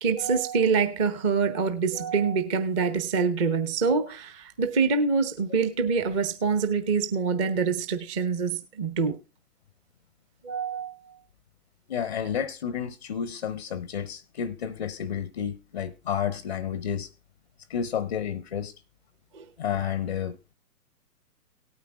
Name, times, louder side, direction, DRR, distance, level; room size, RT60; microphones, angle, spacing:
voice 1, 0.0-9.2 10.4-11.1 19.3-19.4, right 5 dB, 20° right, 0.8 m, -25 dB
voice 2, 11.9-17.1 17.7-18.7 19.6-20.4, left 8 dB, 30° left, 0.5 m, -31 dB
18.0 x 9.3 x 2.3 m
figure-of-eight pair, 125°, 48 cm